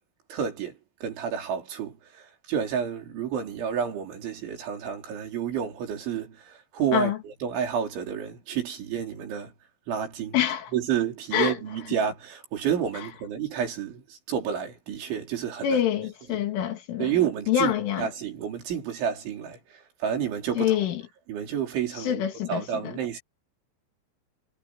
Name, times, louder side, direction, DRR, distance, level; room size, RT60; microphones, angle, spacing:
voice 1, 0.3-9.5 9.9-10.4 10.7-15.8 16.3-16.4 17.0-17.7 18.0-20.7 21.3-22.2 22.5-23.2, right 8 dB, 75° right, 6.6 m, -30 dB
voice 2, 10.3-10.7 11.3-11.6 15.6-17.1 17.5-18.1 20.6-21.0 22.0-23.0, left 10 dB, 90° left, 5.1 m, -26 dB
omnidirectional pair, 5.4 m